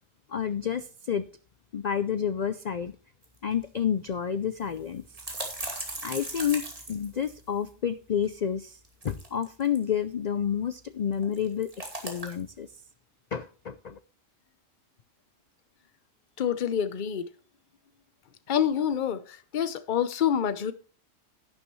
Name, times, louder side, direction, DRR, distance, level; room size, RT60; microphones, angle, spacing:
voice 1, 0.3-1.2 1.7-2.9 3.4-5.0 6.0-6.6 6.9-8.8 9.0-11.7 12.0-12.7 13.3-14.0, left 8 dB, 90° left, 0.3 m, -29 dB
sound 1, 3.2-3.3 3.6-3.7 4.6-7.7 8.7-9.8 11.1-12.5, right 1 dB, 25° right, 2.4 m, -38 dB
voice 2, 16.4-17.3 18.5-20.7, left 8 dB, 45° left, 0.8 m, -27 dB
11.5 x 9.8 x 3.1 m
omnidirectional pair, 1.4 m